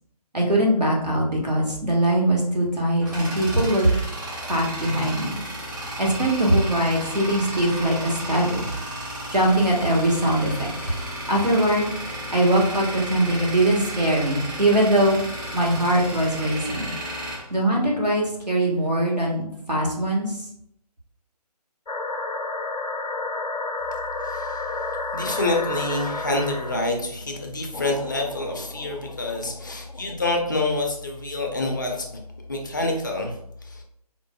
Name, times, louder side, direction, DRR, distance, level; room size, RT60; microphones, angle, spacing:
voice 1, 0.3-3.9 4.5-5.4 6.0-8.7 9.3-11.0 11.3-15.2 15.5-16.9 17.5-20.4, right 1 dB, 85° right, -2 dB, 1.4 m, -22 dB
Tools, 2.5-18.4, right 1 dB, 30° right, 1.0 m, -34 dB
sound 1, 21.9-26.9 27.7-30.2, left 3 dB, 85° left, 0.5 m, -31 dB
voice 2, 24.2-24.8 25.1-32.2 32.5-33.8, left 2 dB, 30° left, 2 dB, 0.4 m, -27 dB
4.4 x 2.5 x 2.2 m, 0.71 s
figure-of-eight pair, 150°, 21 cm